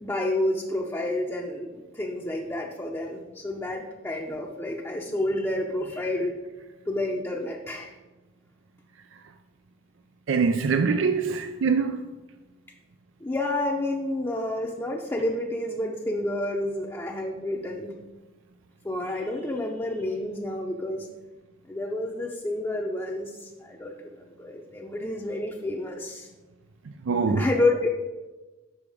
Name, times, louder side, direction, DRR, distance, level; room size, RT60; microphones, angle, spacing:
voice 1, 0.0-6.3 6.9-7.9 13.2-17.9 18.8-21.1 21.7-26.3 27.3-27.9, left 1 dB, 15° left, 0.6 m, -29 dB
voice 2, 10.3-12.0 27.1-27.4, right 5 dB, 90° right, 0.4 m, -23 dB
7.0 x 5.8 x 4.9 m
head